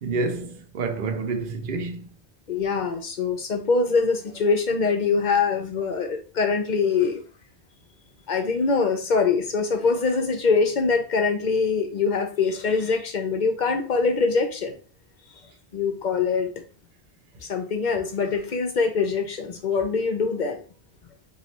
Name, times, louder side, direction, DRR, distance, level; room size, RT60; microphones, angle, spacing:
voice 1, 0.0-2.1, right 3 dB, 60° right, 0.8 m, -28 dB
voice 2, 2.5-7.2 8.3-14.8 15.7-16.5 17.5-20.6, left 4 dB, 50° left, 0.7 m, -23 dB
3.1 x 2.7 x 4.1 m
omnidirectional pair, 1.1 m